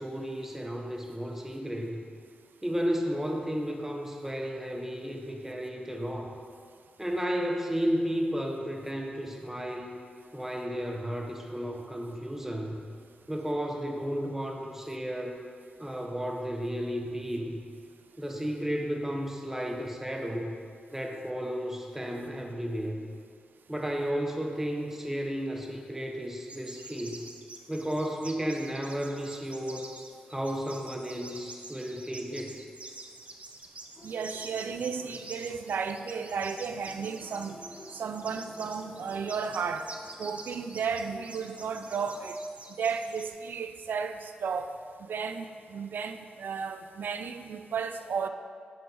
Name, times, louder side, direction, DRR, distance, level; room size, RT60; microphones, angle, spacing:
voice 1, 0.0-2.0 2.6-6.4 7.0-10.0 10.3-12.8 13.3-15.4 15.8-17.6 18.2-20.5 20.9-23.0 23.7-27.3 27.7-29.9 30.3-32.6, equal, 10° right, 1 dB, 1.1 m, -33 dB
sound 1, 26.5-43.3, right 2 dB, 40° right, 0.7 m, -47 dB
sound 2, 33.9-35.7 36.0-42.3, left 2 dB, 50° left, 0.8 m, -52 dB
voice 2, 34.0-37.6 37.9-39.9 40.2-42.4 42.8-44.7 45.0-48.3, right 6 dB, 70° right, 8 dB, 0.4 m, -33 dB
6.1 x 4.4 x 5.5 m, 2.2 s
supercardioid pair, 40°, 3 cm